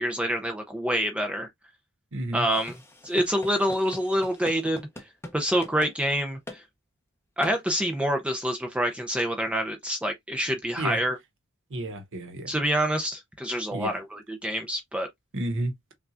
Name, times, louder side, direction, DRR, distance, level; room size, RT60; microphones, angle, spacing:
voice 1, 0.0-1.5 2.3-2.7 3.0-4.8 5.3-6.6 7.4-11.2 12.5-15.1, equal, 5° right, 0.5 m, -27 dB
voice 2, 2.1-2.5 10.8-11.0 11.7-12.5 13.7-14.0 15.3-15.7, right 1 dB, 60° right, 0.9 m, -31 dB
sound 1, 2.5-5.4 5.6-5.9 6.5-6.6 7.4-7.6, left 1 dB, 10° left, 0.9 m, -43 dB
5.6 x 2.3 x 2.5 m
head